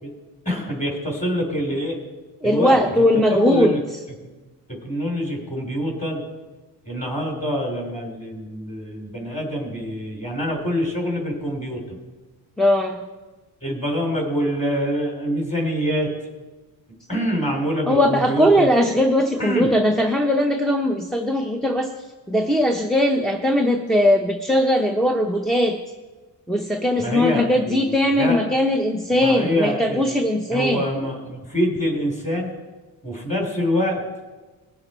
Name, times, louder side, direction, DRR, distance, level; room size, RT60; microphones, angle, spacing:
voice 1, 0.4-2.0 2.4-2.8 3.3-3.8 4.2-4.3 4.8-6.2 6.8-12.0 13.6-16.1 17.1-18.7 19.4-19.7 27.0-27.9 28.2-28.4 29.2-30.2 30.5-32.5 33.0-34.0, equal, 20° left, 1 dB, 3.2 m, -25 dB
voice 2, 2.4-3.7 12.6-13.0 17.9-21.9 22.3-25.8 26.5-30.8, equal, ahead, 1 dB, 0.6 m, -19 dB
19.5 x 7.1 x 4.3 m, 1.2 s
cardioid pair, 140°, 39 cm